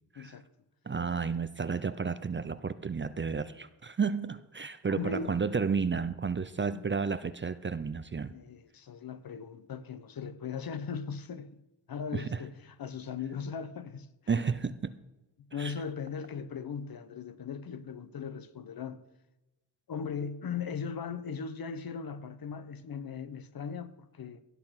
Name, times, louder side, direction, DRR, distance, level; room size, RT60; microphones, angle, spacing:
voice 1, 0.1-0.5 4.9-5.3 6.7-6.8 8.3-11.5 11.9-14.3 15.4-19.0 19.9-24.4, left 6 dB, 50° left, 1.0 m, -38 dB
voice 2, 0.9-8.3 12.1-12.4 14.3-15.0 15.6-15.7, right 5 dB, 25° right, 0.6 m, -32 dB
17.0 x 6.8 x 5.9 m
cardioid pair, 75°, 45 cm